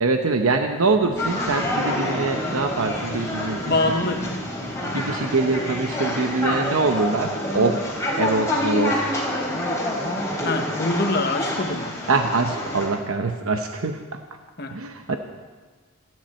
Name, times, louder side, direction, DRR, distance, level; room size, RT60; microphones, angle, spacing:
voice 1, 0.0-3.8 4.2-4.3 4.8-9.2 12.1-14.2 14.7-15.2, right 3 dB, 80° right, 5 dB, 0.9 m, -24 dB
sound 1, 0.8-9.0, equal, 10° right, 6.6 m, -38 dB
sound 2, 1.2-12.9, left 1 dB, 15° left, 3.4 m, -27 dB
voice 2, 3.7-4.4 10.4-12.0 14.6-14.8 15.1-15.2, left 2 dB, 45° left, 5 dB, 1.3 m, -24 dB
27.0 x 10.5 x 4.4 m, 1.4 s
head